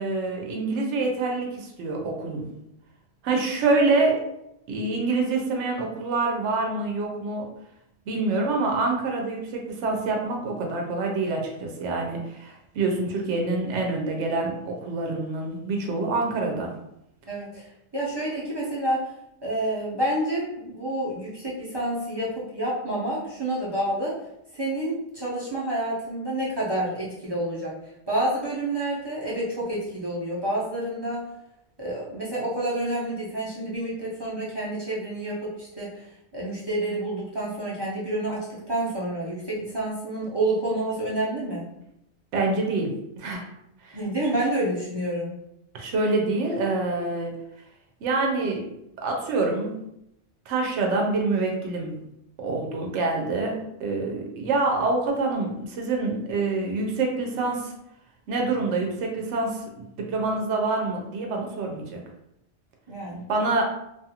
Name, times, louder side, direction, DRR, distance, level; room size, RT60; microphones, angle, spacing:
voice 1, 0.0-2.6 3.2-4.3 4.7-7.5 8.1-16.7 42.3-43.5 43.8-44.0 45.7-47.3 48.0-48.7 49.0-49.8 50.5-52.1 52.4-57.7 58.3-62.0 63.3-63.6, right 3 dB, 85° right, 1 dB, 0.9 m, -26 dB
voice 2, 17.3-17.7 17.9-19.1 19.4-24.2 24.5-27.7 28.1-31.2 31.8-41.6 43.9-45.3 62.9-63.2, right 1 dB, 25° right, -7 dB, 0.7 m, -29 dB
2.6 x 2.4 x 2.8 m, 0.81 s
omnidirectional pair, 1.2 m